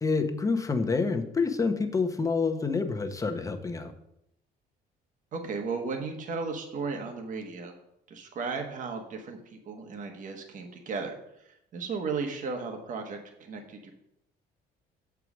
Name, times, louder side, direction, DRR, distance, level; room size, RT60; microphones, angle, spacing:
voice 1, 0.0-3.9, left 4 dB, 20° left, 7 dB, 0.9 m, -27 dB
voice 2, 5.3-7.7 8.1-13.9, right 4 dB, 50° right, 4 dB, 1.3 m, -35 dB
6.8 x 4.7 x 6.1 m, 0.78 s
cardioid pair, 110°, 17 cm